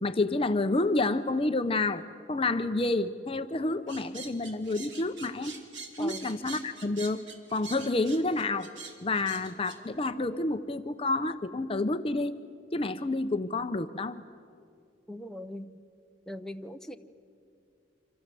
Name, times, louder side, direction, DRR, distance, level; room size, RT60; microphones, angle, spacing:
voice 1, 0.0-5.5 6.0-7.2 7.5-8.7 9.0-12.3 12.7-14.2, left 2 dB, 30° left, 9 dB, 0.7 m, -29 dB
sound 1, 3.9-9.8, right 4 dB, 85° right, 3.0 m, -44 dB
voice 2, 15.1-15.7 16.3-17.0, equal, 5° left, 5 dB, 0.8 m, -40 dB
28.0 x 26.0 x 7.7 m, 2.4 s
head